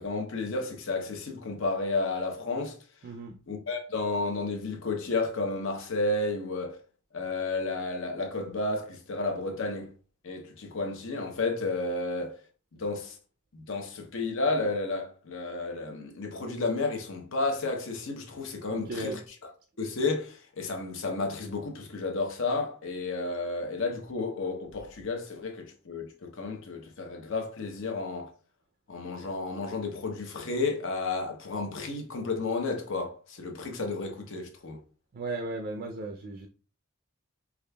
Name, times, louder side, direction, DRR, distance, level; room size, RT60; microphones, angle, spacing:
voice 1, 0.0-2.8 3.5-6.8 7.1-9.9 10.2-12.4 12.7-13.2 13.5-19.2 19.8-28.3 28.9-34.8, left 3 dB, 60° left, 0.7 m, -32 dB
voice 2, 3.0-3.4 18.7-19.2 35.1-36.5, right 2 dB, 45° right, 0.4 m, -36 dB
4.9 x 2.4 x 2.2 m
head